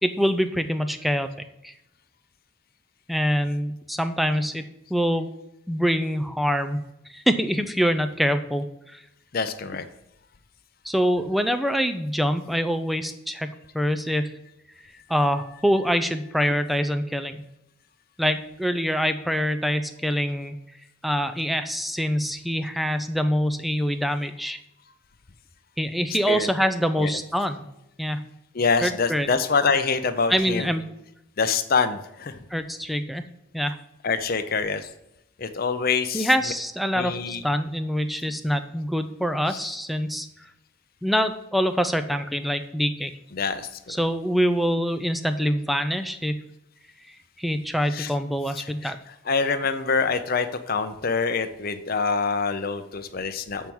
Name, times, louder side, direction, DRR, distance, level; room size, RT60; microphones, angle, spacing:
voice 1, 0.0-1.3 1.6-1.7 3.1-5.3 5.7-9.0 10.8-14.4 15.1-17.4 18.2-20.5 21.0-24.6 25.8-27.6 28.0-28.3 28.8-29.3 30.3-30.9 32.5-33.2 33.5-33.8 36.1-40.3 41.0-43.1 43.9-46.4 47.4-49.0, equal, ahead, 9 dB, 0.4 m, -25 dB
voice 2, 9.3-9.9 26.3-26.5 27.0-27.1 28.5-30.7 31.4-32.4 34.0-34.9 35.4-36.3 36.9-37.4 39.5-39.6 43.3-43.8 47.9-48.1 48.6-48.9 49.3-53.7, left 5 dB, 45° left, 9 dB, 0.6 m, -25 dB
7.4 x 4.6 x 7.1 m, 0.84 s
head